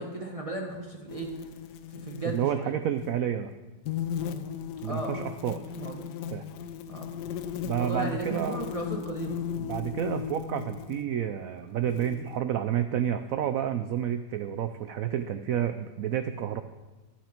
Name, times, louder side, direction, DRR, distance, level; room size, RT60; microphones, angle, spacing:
voice 1, 0.0-1.4 1.9-2.7 4.8-5.2 5.8-6.1 6.9-7.1 7.7-9.4, right 2 dB, 25° right, 0 dB, 0.8 m, -35 dB
sound 1, 1.1-2.5 2.9-3.2 3.9-11.0 11.9-12.4, left 8 dB, 70° left, 1.1 m, -36 dB
voice 2, 2.2-3.5 4.8-5.6 6.3-6.5 7.6-8.6 9.6-16.6, right 10 dB, 80° right, 9 dB, 0.7 m, -30 dB
11.5 x 9.2 x 4.4 m, 1.2 s
omnidirectional pair, 2.0 m